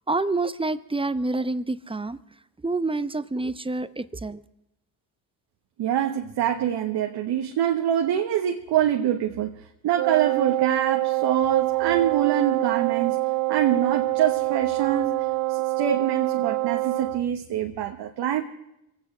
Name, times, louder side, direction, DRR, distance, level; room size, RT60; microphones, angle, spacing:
voice 1, 0.1-2.2 2.6-4.4, right 2 dB, 15° right, 14 dB, 0.8 m, -27 dB
voice 2, 5.8-9.5 9.8-13.2 13.5-15.1 15.5-18.4, right 10 dB, 65° right, 3 dB, 1.2 m, -24 dB
Wind instrument woodwind instrument, 10.0-17.3, right 19 dB, 50° right, 0.5 m, -25 dB
24.5 x 8.8 x 6.2 m, 0.86 s
supercardioid pair, 60°, 42 cm